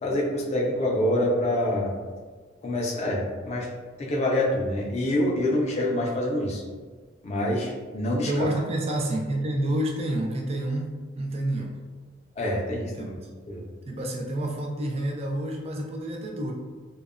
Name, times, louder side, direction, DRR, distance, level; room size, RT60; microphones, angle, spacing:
voice 1, 0.0-1.9 2.6-3.7 4.0-6.6 7.2-8.5 12.4-13.2 13.5-13.6, left 1 dB, 35° left, -2 dB, 0.4 m, -26 dB
voice 2, 8.3-11.7 13.0-13.1 13.9-16.5, right 1 dB, 30° right, 1 dB, 0.3 m, -29 dB
2.6 x 2.1 x 2.4 m, 1.5 s
head